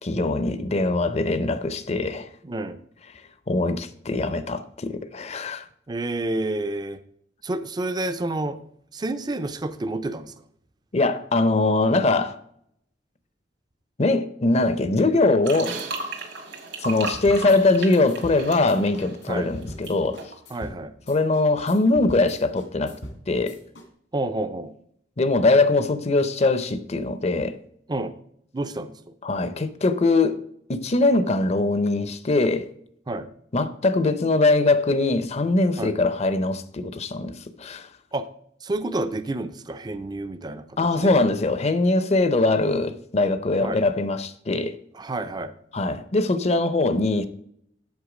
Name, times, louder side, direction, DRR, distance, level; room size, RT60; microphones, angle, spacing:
voice 1, 0.0-2.3 3.5-5.7 10.9-12.4 14.0-15.8 16.8-20.2 21.1-23.0 23.3-23.6 25.2-27.6 29.2-30.4 30.7-32.7 33.5-37.9 40.8-44.8 45.7-47.3, left 2 dB, 35° left, 0.6 m, -22 dB
voice 2, 2.4-2.8 5.9-7.0 7.4-8.6 8.9-10.3 19.3-19.5 20.5-20.9 24.1-24.7 27.9-28.1 28.5-28.9 33.1-33.3 35.8-35.9 38.1-38.3 38.6-41.1 43.6-43.8 44.9-45.5, right 2 dB, 20° right, 0.5 m, -29 dB
sound 1, 15.4-19.9 20.2-20.3, right 3 dB, 75° right, 2.1 m, -35 dB
sound 2, 17.1-23.9, equal, 85° left, 2.2 m, -41 dB
8.1 x 6.6 x 5.0 m
head